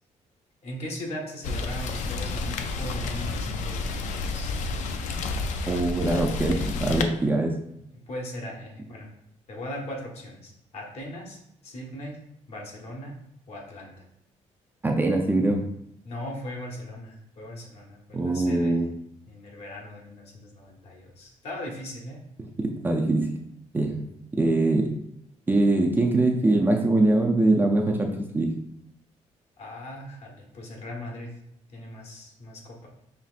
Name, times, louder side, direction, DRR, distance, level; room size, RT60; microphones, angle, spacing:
voice 1, 0.6-4.5 7.8-9.1 9.5-11.4 11.6-12.2 12.5-13.2 13.5-13.9 16.0-18.8 19.3-22.2 29.6-31.3 31.7-32.9, left 1 dB, 55° left, 0 dB, 1.1 m, -39 dB
Rain, 1.4-7.0, left 3 dB, 85° left, 0.4 m, -30 dB
voice 2, 5.7-7.5 14.8-15.6 18.1-18.9 22.6-23.3 23.7-23.9 24.4-24.9 25.5-28.5, right 2 dB, 15° right, 1 dB, 0.4 m, -23 dB
5.7 x 3.1 x 2.5 m, 0.76 s
cardioid pair, 140°, 12 cm